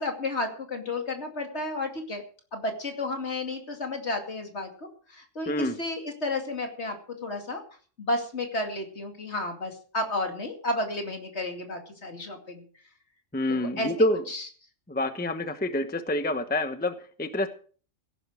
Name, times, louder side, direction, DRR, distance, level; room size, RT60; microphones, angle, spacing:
voice 1, 0.0-2.2 2.5-7.0 7.2-7.6 8.0-12.6 13.5-13.9 14.3-14.4, left 2 dB, 55° left, 4 dB, 2.8 m, -32 dB
voice 2, 5.5-5.8 13.3-14.2 14.9-17.5, left 1 dB, 10° left, 9 dB, 0.9 m, -27 dB
17.0 x 11.0 x 4.9 m, 0.42 s
omnidirectional pair, 1.3 m